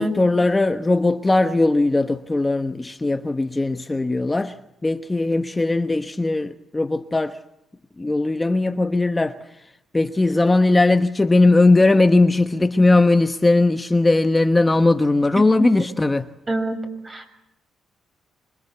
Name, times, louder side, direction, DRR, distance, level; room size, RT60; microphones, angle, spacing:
voice 1, 0.0-4.6 4.8-7.4 8.0-9.4 9.9-16.2, left 2 dB, 15° left, 1.1 m, -19 dB
voice 2, 16.5-16.8 17.0-17.3, right 1 dB, 30° right, 6.1 m, -25 dB
25.5 x 24.0 x 8.3 m
cardioid pair, 90°, 0 cm